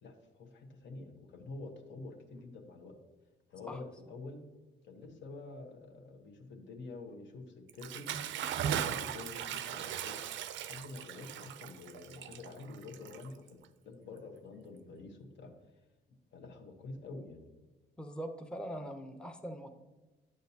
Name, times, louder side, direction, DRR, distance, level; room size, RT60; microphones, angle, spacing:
voice 1, 0.0-2.9 3.5-4.4 4.8-8.1 8.7-10.2 10.5-13.5 13.8-15.5 16.3-17.4, left 3 dB, 65° left, 4 dB, 1.2 m, -47 dB
Bathtub (filling or washing) / Splash splatter, 7.7-13.6, right 9 dB, 75° right, 0.5 m, -38 dB
voice 2, 18.0-19.7, equal, 5° left, 5 dB, 0.6 m, -42 dB
9.5 x 6.3 x 2.8 m, 1.2 s
cardioid pair, 90°, 20 cm